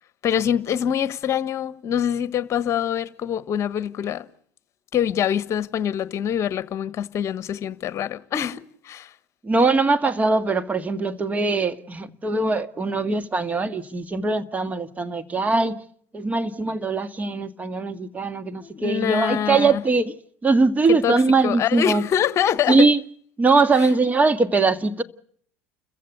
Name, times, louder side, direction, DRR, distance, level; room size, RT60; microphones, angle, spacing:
voice 1, 0.2-4.3 4.9-9.1 18.6-19.8 20.9-22.8, left 9 dB, 45° left, 1.3 m, -25 dB
voice 2, 9.4-15.8 16.1-20.1 20.4-22.0 22.7-23.0 23.4-25.0, right 3 dB, 25° right, 1.8 m, -21 dB
29.5 x 15.0 x 8.1 m
hypercardioid pair, 75°, 7 cm